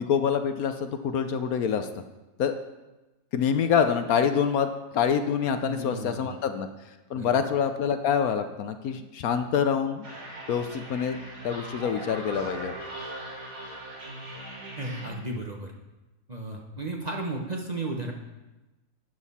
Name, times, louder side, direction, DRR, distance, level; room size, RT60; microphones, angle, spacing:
voice 1, 0.0-1.9 2.4-2.5 3.3-6.7 7.1-10.1 10.5-11.2 11.4-12.7, left 7 dB, 70° left, 8 dB, 1.1 m, -26 dB
voice 2, 5.6-6.5 7.1-7.4 14.8-15.7 16.3-18.1, right 2 dB, 30° right, 0 dB, 0.9 m, -34 dB
sound 1, 10.0-15.1, right 1 dB, 70° right, 3.2 m, -39 dB
13.0 x 9.1 x 4.2 m, 1.1 s
omnidirectional pair, 1.7 m